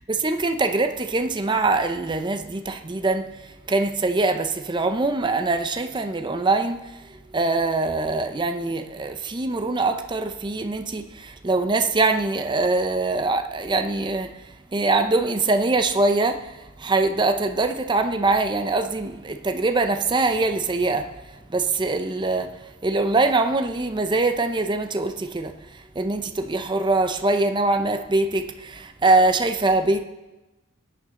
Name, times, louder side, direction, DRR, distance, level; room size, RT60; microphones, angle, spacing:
voice 1, 0.2-3.3 3.7-6.8 7.3-14.3 14.7-21.1 21.5-22.5 22.8-25.5 26.0-30.0, right 3 dB, 20° right, 0.6 m, -23 dB
20.5 x 9.2 x 3.8 m
head